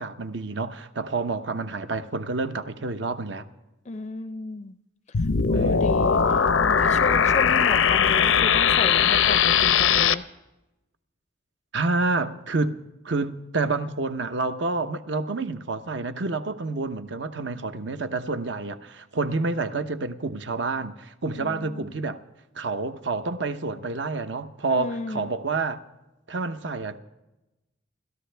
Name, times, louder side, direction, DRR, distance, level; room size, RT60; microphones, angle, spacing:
voice 1, 0.0-3.5 5.5-6.3 11.7-12.7 13.0-22.2 22.5-25.8 26.3-27.0, right 3 dB, 65° right, 0.9 m, -28 dB
voice 2, 3.9-4.8 5.5-10.2 21.3-21.9 24.7-25.3, left 3 dB, 35° left, 0.4 m, -33 dB
sound 1, 5.1-10.1, left 7 dB, 85° left, 0.6 m, -20 dB
28.5 x 14.0 x 3.4 m
head